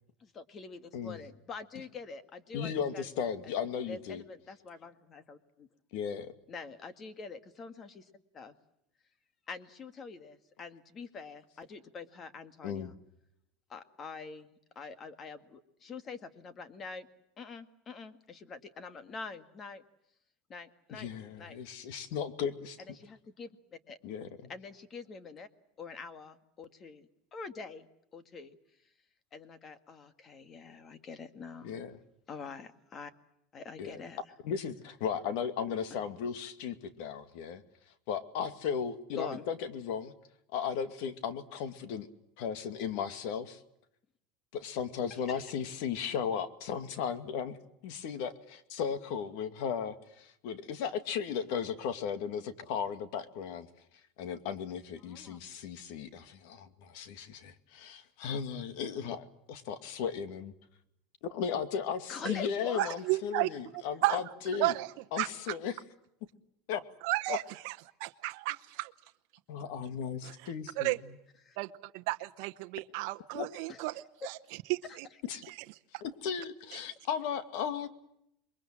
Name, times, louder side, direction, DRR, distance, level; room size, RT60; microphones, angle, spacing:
voice 1, 0.2-3.3 3.9-5.7 6.5-8.1 8.3-8.5 9.5-12.9 13.7-17.1 17.4-19.8 20.5-21.1 21.4-21.6 23.0-24.0 24.5-25.5 25.8-27.9 28.1-28.6 29.3-31.8 32.3-33.1 33.5-34.2 39.2-39.5 45.3-45.4 55.0-55.4 62.1-62.9 71.4-71.6 73.7-73.8 74.8-75.0, left 4 dB, 25° left, 11 dB, 1.9 m, -45 dB
voice 2, 2.5-4.2 5.9-6.3 12.6-12.9 20.9-22.8 24.0-24.5 31.6-32.0 33.8-33.9 34.4-37.6 38.1-40.1 40.5-42.1 42.4-43.6 44.5-47.6 47.8-53.7 54.2-60.5 61.3-64.7 65.1-65.8 66.7-66.8 67.3-67.4 69.5-70.9 73.3-73.5 75.2-75.4 76.0-77.9, left 7 dB, 65° left, 11 dB, 2.3 m, -36 dB
voice 3, 62.8-63.5 64.0-64.2 64.6-64.9 65.2-65.5 67.0-68.9 70.2-71.0 71.6-74.4 74.7-75.1 75.5-75.6, right 20 dB, 60° right, 8 dB, 0.9 m, -33 dB
28.0 x 22.5 x 7.5 m, 0.79 s
supercardioid pair, 150°, 0 cm